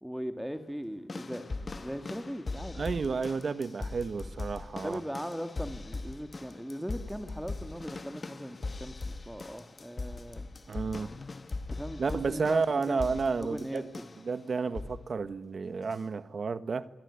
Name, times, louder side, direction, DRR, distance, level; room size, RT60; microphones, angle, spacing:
voice 1, 0.0-1.5 1.8-2.9 4.8-10.5 11.7-13.9, equal, 5° right, 8 dB, 2.0 m, -39 dB
sound 1, 1.1-14.3 14.7-15.1 15.9-16.0, left 3 dB, 40° left, 1.7 m, -40 dB
voice 2, 2.7-5.0 10.7-11.1 12.0-13.8 14.2-16.9, right 4 dB, 60° right, 14 dB, 1.5 m, -31 dB
27.0 x 22.0 x 9.8 m, 0.94 s
wide cardioid pair, 95°, 0 cm